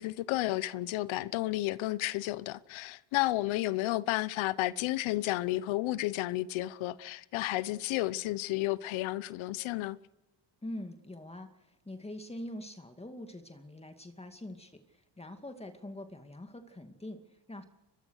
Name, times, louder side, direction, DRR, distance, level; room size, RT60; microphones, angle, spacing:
voice 1, 0.0-10.0, left 17 dB, 80° left, 1.0 m, -32 dB
voice 2, 10.6-17.7, left 1 dB, 15° left, 2.3 m, -44 dB
23.5 x 22.5 x 6.5 m
cardioid pair, 95°, 47 cm